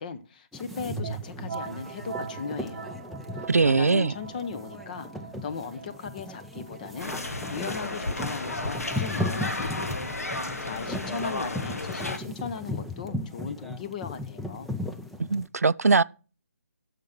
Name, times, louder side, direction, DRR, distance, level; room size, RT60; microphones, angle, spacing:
voice 1, 0.0-3.0 3.6-5.1 5.4-10.0 10.6-14.7, left 6 dB, 35° left, 0.8 m, -37 dB
sound 1, 0.5-15.5, left 1 dB, ahead, 0.4 m, -37 dB
sound 2, 0.9-10.4, right 5 dB, 55° right, 0.9 m, -42 dB
voice 2, 3.5-4.1 15.2-16.0, right 4 dB, 80° right, 0.3 m, -21 dB
sound 3, 7.0-12.2, left 2 dB, 75° left, 1.3 m, -33 dB
8.2 x 6.7 x 5.8 m
figure-of-eight pair, 145°, 8 cm